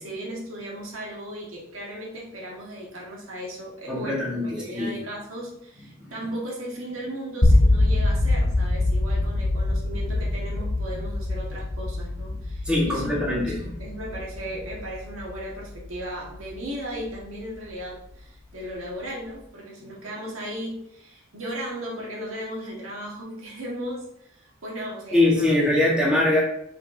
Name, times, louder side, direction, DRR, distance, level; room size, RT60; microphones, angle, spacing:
voice 1, 0.0-25.5, right 1 dB, 90° right, -3 dB, 1.7 m, -36 dB
voice 2, 3.9-5.0 12.7-13.7 25.1-26.4, left 1 dB, 5° right, -5 dB, 1.7 m, -22 dB
sound 1, 7.4-17.4, left 2 dB, 80° left, 1.5 m, -24 dB
5.8 x 5.8 x 2.8 m, 0.75 s
head